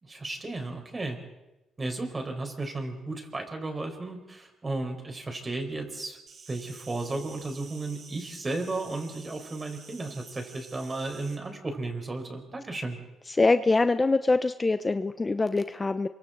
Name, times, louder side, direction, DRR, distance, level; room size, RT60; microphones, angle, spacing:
voice 1, 0.0-1.2 1.8-6.2 6.5-13.0, right 2 dB, 25° right, 3 dB, 4.9 m, -34 dB
Insect, 6.3-11.4, right 5 dB, 60° right, 4.2 m, -50 dB
voice 2, 13.4-16.1, left 3 dB, 25° left, 11 dB, 0.7 m, -24 dB
27.5 x 24.0 x 4.0 m, 0.98 s
cardioid pair, 90°, 0 cm